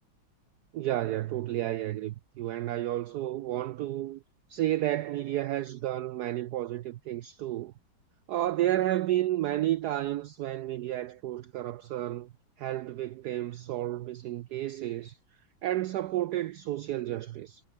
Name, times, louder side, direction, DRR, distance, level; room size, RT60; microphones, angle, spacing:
voice 1, 0.7-4.2 4.5-7.7 8.3-12.3 12.6-15.2 15.6-17.6, right 14 dB, 75° right, 0.9 m, -31 dB
omnidirectional pair, 2.2 m